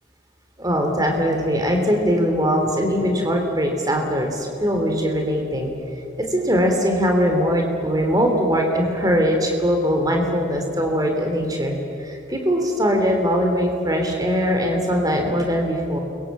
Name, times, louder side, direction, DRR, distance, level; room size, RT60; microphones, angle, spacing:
voice 1, 0.6-5.7 6.2-11.7 12.0-16.0, equal, 20° right, 2 dB, 3.4 m, -21 dB
29.5 x 23.5 x 7.6 m, 2.7 s
head